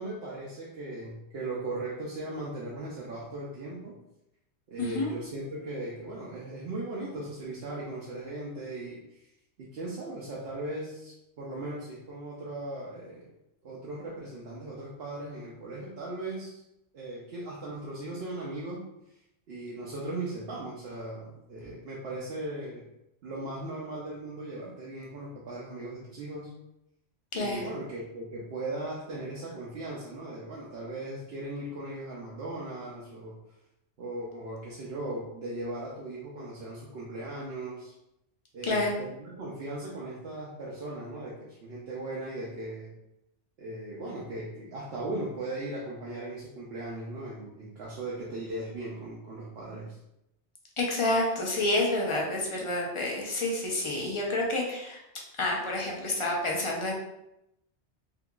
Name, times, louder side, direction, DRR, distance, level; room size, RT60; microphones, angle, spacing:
voice 1, 0.0-4.0 4.7-9.3 9.6-13.3 13.6-16.6 16.9-18.8 19.1-19.2 19.5-22.9 23.2-26.5 27.3-33.4 34.0-37.9 38.5-43.0 43.6-50.0, right 2 dB, 65° right, -5 dB, 0.8 m, -38 dB
voice 2, 4.8-5.1 27.3-27.6 38.6-38.9 50.8-55.0 55.4-56.9, left 2 dB, 35° left, -2 dB, 0.5 m, -29 dB
3.7 x 2.7 x 2.3 m, 0.85 s
omnidirectional pair, 1.2 m